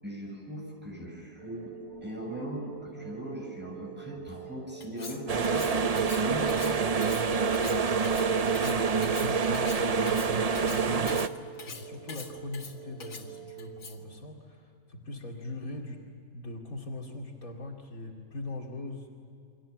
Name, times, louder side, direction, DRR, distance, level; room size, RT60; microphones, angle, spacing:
voice 1, 0.0-6.6, equal, 5° right, -1 dB, 7.7 m, -39 dB
sound 1, 1.4-13.8, right 12 dB, 30° left, 8.3 m, -46 dB
Cutlery silverware, 4.8-14.1, left 5 dB, 85° left, 2.7 m, -44 dB
sound 2, 5.3-11.3, right 5 dB, 40° right, 0.5 m, -26 dB
voice 2, 8.6-16.1 16.3-19.1, left 2 dB, 60° left, 0 dB, 2.9 m, -41 dB
29.5 x 24.5 x 7.5 m, 2.7 s
omnidirectional pair, 1.7 m